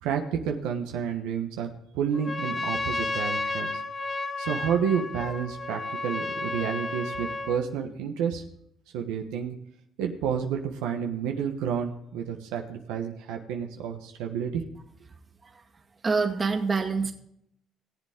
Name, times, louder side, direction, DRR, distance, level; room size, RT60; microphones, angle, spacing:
voice 1, 0.0-3.8 4.4-8.4 8.9-9.5 10.0-14.6, right 7 dB, 90° right, 3 dB, 1.3 m, -30 dB
Trumpet, 2.1-7.6, left 2 dB, 30° left, 1.3 m, -32 dB
voice 2, 16.0-17.1, right 4 dB, 30° right, 3 dB, 2.1 m, -26 dB
18.0 x 7.9 x 3.8 m, 0.72 s
supercardioid pair, 80°, 0 cm